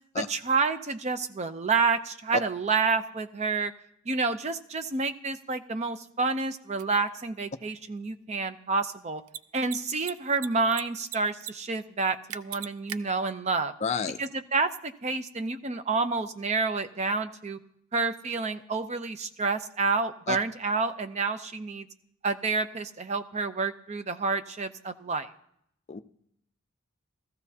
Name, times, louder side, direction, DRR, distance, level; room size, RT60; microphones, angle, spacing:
voice 1, 0.2-3.7 4.1-9.2 9.5-13.7 14.2-17.6 17.9-21.9 22.2-25.3, right 4 dB, 30° right, 10 dB, 0.6 m, -29 dB
Mechanisms, 6.8-6.9 9.2-9.4 9.6-9.8 10.0-10.8 11.1-11.5 11.8-11.9 12.3-13.0, right 11 dB, 80° right, 0.4 m, -36 dB
voice 2, 13.8-14.2 20.3-20.4 25.9-26.0, left 6 dB, 30° left, 8 dB, 0.4 m, -29 dB
15.5 x 14.0 x 2.8 m, 0.73 s
head